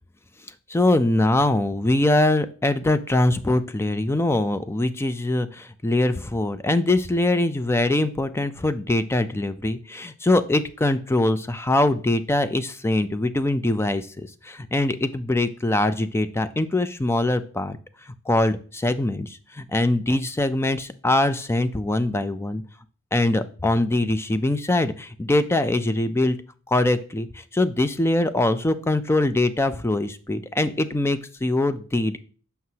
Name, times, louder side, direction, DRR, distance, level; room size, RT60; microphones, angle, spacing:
voice 1, 0.7-17.8 18.1-22.6 23.1-26.4 26.7-32.2, left 2 dB, 10° left, 11 dB, 0.4 m, -23 dB
7.7 x 5.6 x 2.8 m, 0.41 s
head